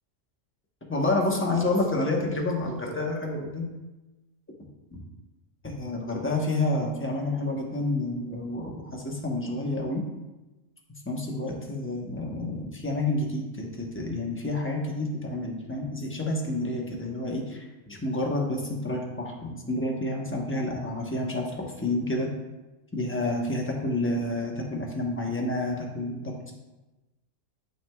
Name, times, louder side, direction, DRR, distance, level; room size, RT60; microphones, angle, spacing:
voice 1, 0.9-3.7 4.9-5.0 5.6-10.0 11.1-22.3 22.9-26.5, left 2 dB, 10° left, -1 dB, 0.8 m, -29 dB
8.9 x 5.9 x 2.3 m, 1.1 s
omnidirectional pair, 1.3 m